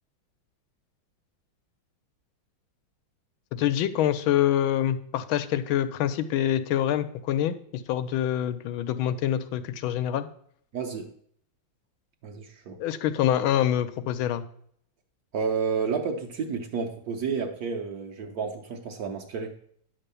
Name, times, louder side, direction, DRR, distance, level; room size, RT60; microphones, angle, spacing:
voice 1, 3.5-7.6 7.9-10.3 12.8-14.4, left 11 dB, 85° left, 10 dB, 1.5 m, -25 dB
voice 2, 10.7-11.1 12.2-12.8 15.3-19.6, right 5 dB, 60° right, 3 dB, 1.1 m, -31 dB
9.8 x 3.6 x 6.8 m, 0.64 s
omnidirectional pair, 2.2 m